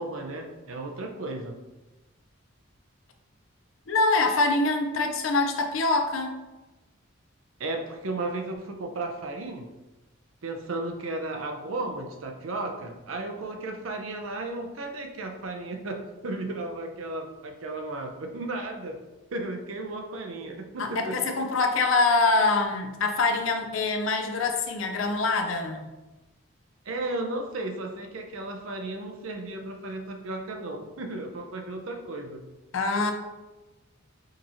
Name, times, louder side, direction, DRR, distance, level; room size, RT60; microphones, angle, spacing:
voice 1, 0.0-1.6 7.6-9.7 10.4-19.0 19.3-21.1 26.9-32.4, right 2 dB, 85° right, 3 dB, 0.6 m, -34 dB
voice 2, 3.9-6.4 20.8-25.9 32.7-33.1, left 3 dB, 75° left, 4 dB, 0.5 m, -24 dB
5.1 x 2.9 x 2.7 m, 1.1 s
head